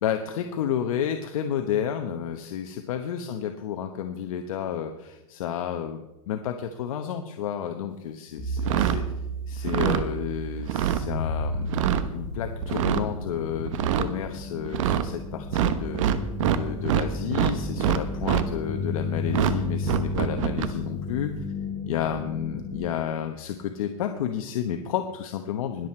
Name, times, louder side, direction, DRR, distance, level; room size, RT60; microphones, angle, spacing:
voice 1, 0.0-9.0 9.5-11.8 12.1-16.0 16.5-21.3 21.9-25.9, left 9 dB, 75° left, 6 dB, 1.1 m, -31 dB
sound 1, 8.4-22.9, left 2 dB, 20° left, 3.4 m, -33 dB
sound 2, 8.6-9.0 9.6-10.0 10.6-11.0 11.6-12.0 12.6-13.0 13.6-14.1 14.6-15.1 15.5-17.1 17.3-18.5 19.3-19.5 19.8-20.7, right 11 dB, 60° right, 1.1 m, -24 dB
21.0 x 7.8 x 4.4 m, 0.96 s
supercardioid pair, 160°, 18 cm